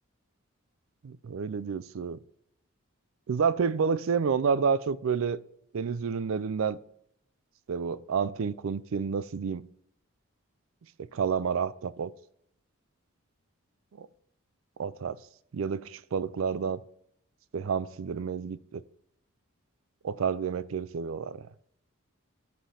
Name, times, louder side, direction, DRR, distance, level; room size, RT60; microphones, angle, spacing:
voice 1, 1.0-2.2 3.3-5.4 5.7-6.8 7.7-9.7 11.0-12.1 14.0-14.1 14.8-15.2 15.5-16.8 17.5-18.8 20.0-21.5, right 6 dB, 70° right, 0.4 m, -29 dB
7.9 x 5.0 x 5.7 m
head